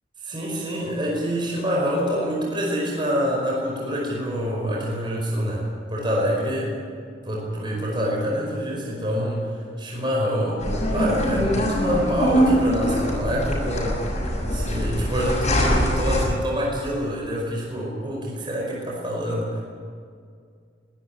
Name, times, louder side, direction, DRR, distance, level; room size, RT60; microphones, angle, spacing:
voice 1, 0.2-6.7 7.2-14.2 14.5-19.6, equal, 25° right, -2 dB, 5.2 m, -26 dB
sound 1, 10.6-16.2, equal, 40° left, 6.6 m, -23 dB
23.0 x 12.5 x 10.0 m, 2.2 s
head